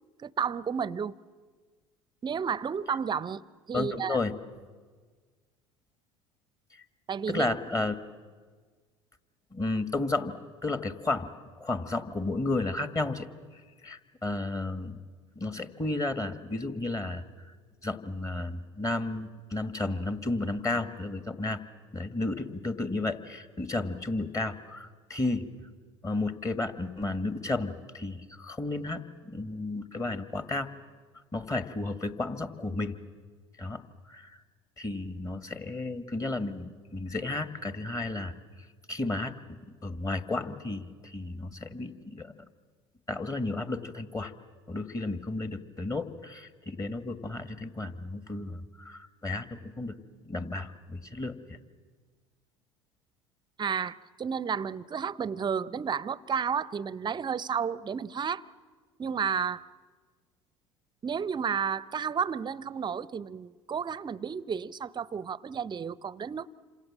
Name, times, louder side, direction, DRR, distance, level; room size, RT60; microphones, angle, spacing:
voice 1, 0.2-1.1 2.2-3.4 3.7-4.2 7.1-7.5 53.6-58.4 59.0-59.7 61.0-66.5, right 7 dB, 30° right, 0.7 m, -32 dB
voice 2, 3.7-4.3 7.3-8.0 9.5-10.3 10.6-11.3 11.6-13.3 13.8-15.0 15.4-17.5 17.8-21.6 21.9-25.5 26.0-30.7 31.3-33.0 33.6-33.8 34.1-34.4 34.8-38.3 38.9-42.3 43.1-44.3 44.7-50.0 50.2-51.6, left 2 dB, 20° left, 1.9 m, -33 dB
28.5 x 26.5 x 7.5 m
hypercardioid pair, 70°, 16 cm